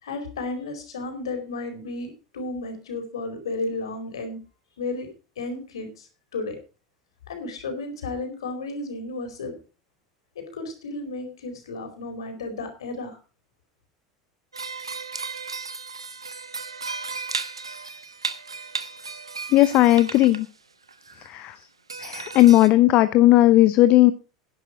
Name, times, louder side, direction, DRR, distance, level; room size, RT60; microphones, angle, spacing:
voice 1, 0.0-4.4 4.8-5.1 5.4-6.6 7.3-9.5 10.3-13.2, left 2 dB, 70° left, 5 dB, 4.5 m, -33 dB
sound 1, 14.5-20.5 20.9-21.3 21.6-21.7 21.9-22.7, right 4 dB, 85° right, 1.2 m, -35 dB
voice 2, 19.5-20.5 21.2-21.6 22.0-24.1, left 16 dB, 50° left, 14 dB, 0.7 m, -16 dB
11.5 x 10.5 x 4.9 m, 0.34 s
figure-of-eight pair, 75°, 3 cm